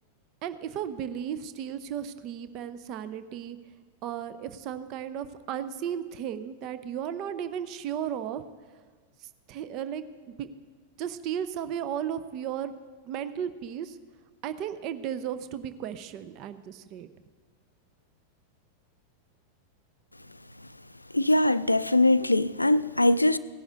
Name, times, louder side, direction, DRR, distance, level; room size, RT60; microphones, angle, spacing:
voice 1, 0.4-3.6 4.0-8.4 9.5-10.0 10.4-10.5 11.0-12.7 13.1-14.0 14.4-17.1, right 9 dB, 40° right, 0.6 m, -34 dB
voice 2, 21.1-23.4, left 2 dB, 85° left, 0.4 m, -22 dB
17.5 x 11.0 x 4.0 m
figure-of-eight pair, 90°, 0 cm